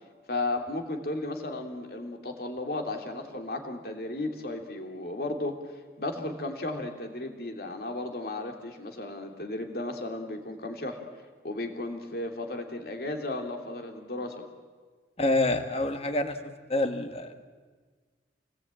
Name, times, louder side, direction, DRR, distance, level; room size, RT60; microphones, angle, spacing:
voice 1, 0.3-11.0 11.4-14.4, left 2 dB, 55° left, 4 dB, 2.9 m, -34 dB
voice 2, 15.2-16.4 16.7-17.4, left 2 dB, 35° left, 8 dB, 1.6 m, -27 dB
27.0 x 19.0 x 9.0 m, 1.5 s
head